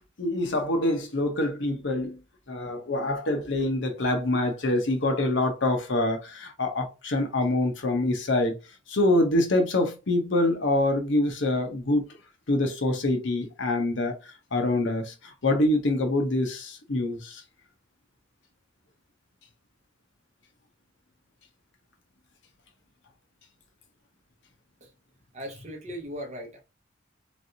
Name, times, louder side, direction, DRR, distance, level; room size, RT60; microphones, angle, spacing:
voice 1, 0.2-2.2 2.5-8.5 8.9-12.1 12.5-14.1 14.5-17.4, left 1 dB, 65° left, 0.8 m, -25 dB
voice 2, 25.3-26.6, equal, 35° right, 0.9 m, -38 dB
3.2 x 2.6 x 2.7 m
head